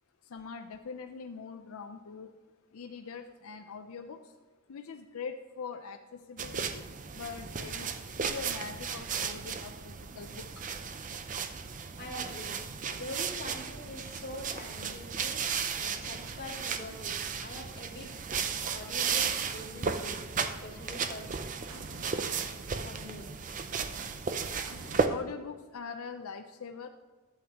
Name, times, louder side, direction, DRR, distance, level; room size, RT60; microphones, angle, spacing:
voice 1, 0.3-2.3 2.7-4.3 4.7-6.8 7.1-10.5 25.1-26.9, left 5 dB, 90° left, 6 dB, 0.5 m, -42 dB
sound 1, 6.4-25.1, right 6 dB, 35° right, 0.5 m, -35 dB
voice 2, 12.0-12.6 12.9-15.4 15.8-17.1 17.4-18.1 18.7-21.3 22.8-23.6, left 1 dB, 45° left, -2 dB, 2.0 m, -44 dB
sound 2, 20.8-21.3 21.7-25.2, right 2 dB, 85° right, 1.1 m, -51 dB
11.5 x 7.9 x 2.9 m, 1.3 s
head